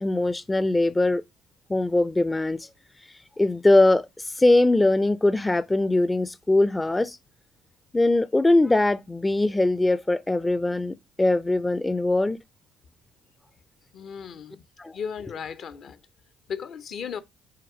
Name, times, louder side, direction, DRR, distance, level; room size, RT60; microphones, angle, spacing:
voice 1, 0.0-1.2 1.7-2.7 3.4-7.2 7.9-12.4 14.8-15.0, left 2 dB, 15° left, 0.4 m, -21 dB
voice 2, 13.9-14.6 14.9-16.0 16.5-17.2, left 7 dB, 55° left, 0.6 m, -35 dB
5.8 x 3.5 x 4.8 m
hypercardioid pair, 50°, 0 cm